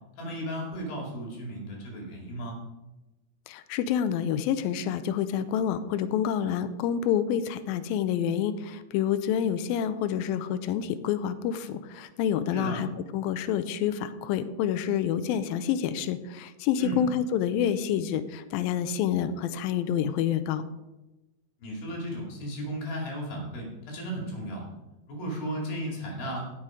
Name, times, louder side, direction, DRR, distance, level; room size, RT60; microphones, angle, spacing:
voice 1, 0.2-2.6 12.5-12.8 16.8-17.0 21.6-24.7 25.1-26.4, right 1 dB, 65° left, -1 dB, 4.3 m, -35 dB
voice 2, 3.5-20.6, left 9 dB, 85° left, 12 dB, 2.2 m, -28 dB
15.5 x 6.4 x 5.0 m, 1.0 s
omnidirectional pair, 4.8 m